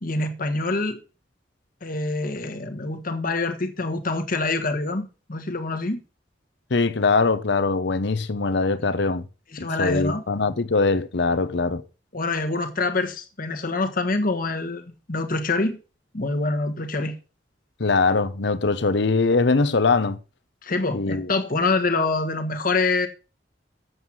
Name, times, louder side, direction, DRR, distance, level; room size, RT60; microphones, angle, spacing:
voice 1, 0.0-1.0 1.8-6.0 9.5-10.2 12.1-15.8 16.1-17.1 20.6-23.1, left 3 dB, 50° left, 1.4 m, -25 dB
voice 2, 6.7-9.2 9.6-11.8 17.8-20.2 20.9-21.3, left 3 dB, 65° left, 0.8 m, -22 dB
7.9 x 7.3 x 6.2 m
head